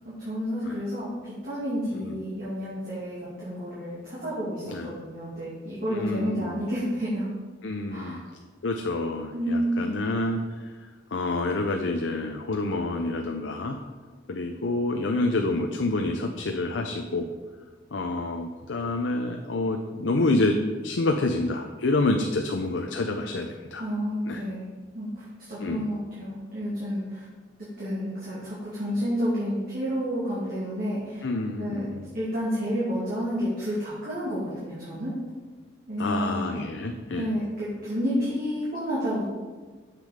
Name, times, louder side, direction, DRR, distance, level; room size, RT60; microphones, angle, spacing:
voice 1, 0.0-7.3 7.9-8.2 9.3-10.0 23.8-24.7 24.9-27.2 27.8-31.2 31.6-31.8 32.1-35.1 35.9-36.6 37.1-39.2, equal, 50° right, -10 dB, 2.6 m, -30 dB
voice 2, 5.9-6.6 7.6-8.2 8.6-10.6 11.1-13.8 14.3-17.3 17.9-20.6 20.8-23.8 24.3-24.4 25.6-25.9 31.2-32.0 36.0-37.3, left 2 dB, 85° left, 4 dB, 0.6 m, -28 dB
7.6 x 6.2 x 5.1 m, 1.4 s
head